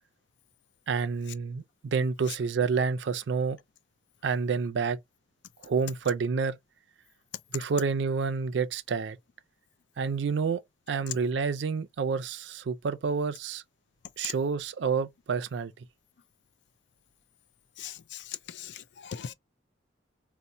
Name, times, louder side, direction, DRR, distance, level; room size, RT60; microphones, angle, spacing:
voice 1, 0.9-3.6 4.2-5.0 5.6-6.6 7.5-9.2 10.0-10.6 10.9-13.6 14.2-15.7, right 5 dB, 75° right, 0.4 m, -29 dB
voice 2, 17.8-19.3, left 9 dB, 70° left, 0.4 m, -39 dB
4.2 x 2.0 x 2.5 m
head